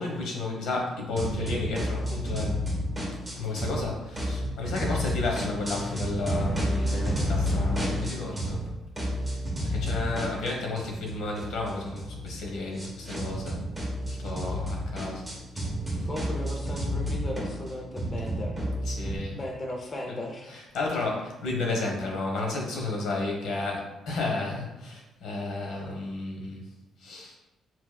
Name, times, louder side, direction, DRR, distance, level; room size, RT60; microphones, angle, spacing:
voice 1, 0.0-2.6 3.3-8.7 9.3-13.6 14.0-15.2 15.9-16.1 18.8-19.4 20.1-26.7 27.0-27.4, left 3 dB, 85° left, 0 dB, 1.1 m, -32 dB
sound 1, 1.2-3.8 4.1-8.7 8.9-19.2, equal, 5° right, 1.0 m, -31 dB
voice 2, 14.3-14.7 16.0-18.6 19.3-20.5 20.9-21.0, left 1 dB, 25° left, 1 dB, 0.5 m, -37 dB
4.8 x 4.0 x 2.2 m, 0.98 s
cardioid pair, 155°, 0 cm